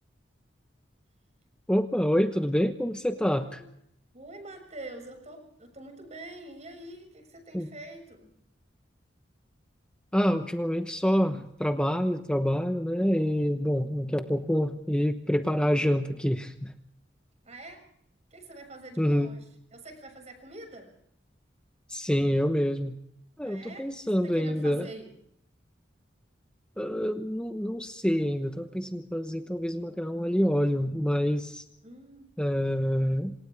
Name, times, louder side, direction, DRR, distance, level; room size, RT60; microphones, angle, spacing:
voice 1, 1.7-3.5 7.5-7.7 10.1-16.7 19.0-19.3 21.9-23.0 23.4-24.9 26.8-31.6 32.4-33.3, equal, 5° left, 6 dB, 1.0 m, -27 dB
voice 2, 3.2-3.7 4.1-8.3 17.4-17.9 18.3-19.4 19.7-20.9 23.4-25.1 31.8-32.3, right 2 dB, 40° right, 5 dB, 6.7 m, -45 dB
27.5 x 27.5 x 3.5 m, 0.72 s
head